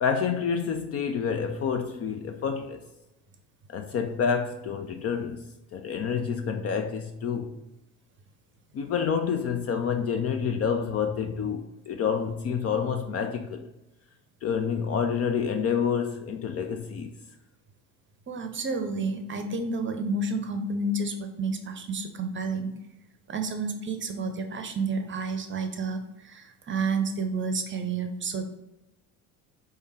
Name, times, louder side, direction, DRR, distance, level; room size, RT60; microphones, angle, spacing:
voice 1, 0.0-2.8 3.7-7.6 8.7-13.7 14.4-17.1, left 6 dB, 35° left, 0.4 m, -28 dB
voice 2, 18.3-22.7 23.3-28.4, right 3 dB, 25° right, 0.7 m, -30 dB
4.4 x 3.5 x 3.2 m
hypercardioid pair, 65°, 45 cm